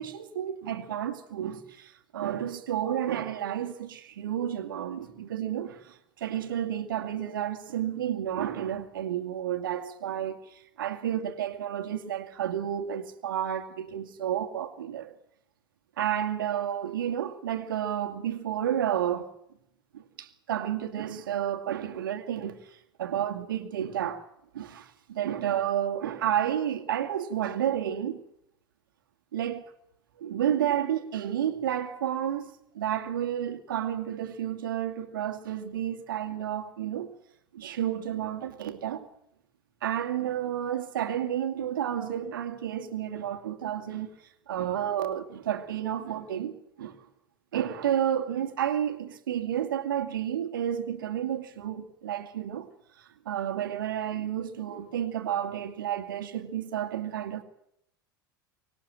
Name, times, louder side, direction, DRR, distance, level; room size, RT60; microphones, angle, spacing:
voice 1, 0.0-15.1 16.0-19.3 19.9-24.2 24.5-28.2 29.3-29.6 30.2-37.1 37.5-39.1 39.8-44.2 44.5-47.0 47.5-52.7 53.0-57.4, right 10 dB, 75° right, 2.3 m, -31 dB
24.5 x 20.0 x 7.6 m
figure-of-eight pair, 75°, 11 cm